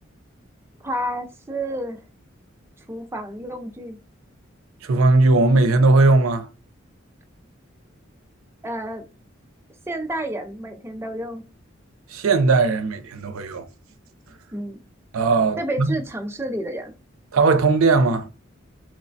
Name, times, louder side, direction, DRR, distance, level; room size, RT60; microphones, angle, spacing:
voice 1, 0.8-2.0 2.9-4.0 8.6-9.1 9.9-11.4 14.5-14.8 15.6-16.9, right 1 dB, 10° right, 0.3 m, -30 dB
voice 2, 4.8-6.5 12.1-13.6 15.1-15.9 17.3-18.3, right 3 dB, 90° right, 0.5 m, -18 dB
3.0 x 2.1 x 2.6 m
head